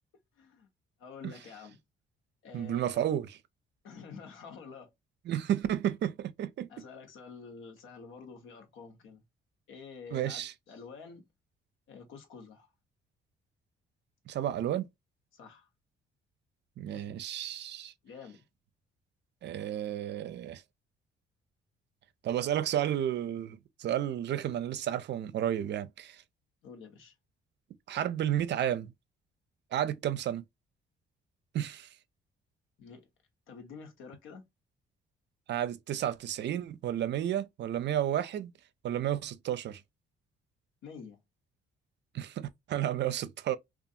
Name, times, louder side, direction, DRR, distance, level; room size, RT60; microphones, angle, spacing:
voice 1, 0.4-0.7 1.0-1.8 2.4-3.0 3.8-4.9 6.7-9.2 9.7-11.3 11.9-12.7 15.3-15.7 16.9-17.2 18.0-18.4 26.6-27.1 32.8-33.1 33.5-34.5 40.8-41.2, left 5 dB, 80° left, 0.9 m, -48 dB
voice 2, 2.5-3.4 5.3-6.7 10.1-10.5 14.3-14.9 16.8-17.9 19.4-20.6 22.2-26.2 27.9-28.9 29.7-30.4 31.5-31.9 35.5-38.5 38.8-39.8 42.1-43.6, right 11 dB, 60° right, 0.4 m, -32 dB
2.7 x 2.3 x 2.3 m
cardioid pair, 90°, 20 cm